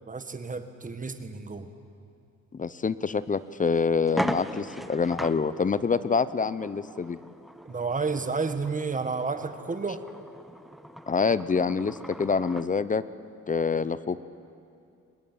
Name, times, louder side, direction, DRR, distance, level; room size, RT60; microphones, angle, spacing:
voice 1, 0.1-1.7 7.6-10.0, right 4 dB, 25° right, 9 dB, 1.7 m, -31 dB
voice 2, 2.5-7.2 11.1-13.0 13.5-14.3, left 5 dB, 25° left, 16 dB, 0.7 m, -26 dB
sound 1, 3.1-3.2 3.6-3.7 4.1-12.7, equal, ahead, 0.9 m, -39 dB
23.5 x 20.0 x 9.2 m, 2.5 s
cardioid pair, 90°, 30 cm